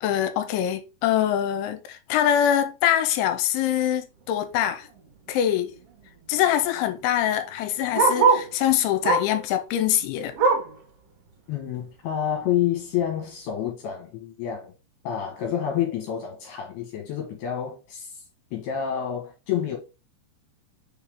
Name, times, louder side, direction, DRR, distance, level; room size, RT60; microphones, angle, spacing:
voice 1, 0.0-4.9 5.3-5.7 6.3-10.3, left 10 dB, 90° left, 3.1 m, -24 dB
Bark, 4.8-5.1 5.4-5.5 5.7-8.5 9.0-9.4 9.8-10.8 11.3-11.4 11.8-11.9 12.5-12.6, right 4 dB, 65° right, 1.4 m, -24 dB
voice 2, 11.5-14.7 15.0-18.2 18.5-19.8, left 9 dB, 70° left, 2.9 m, -28 dB
6.5 x 4.2 x 3.6 m
omnidirectional pair, 5.5 m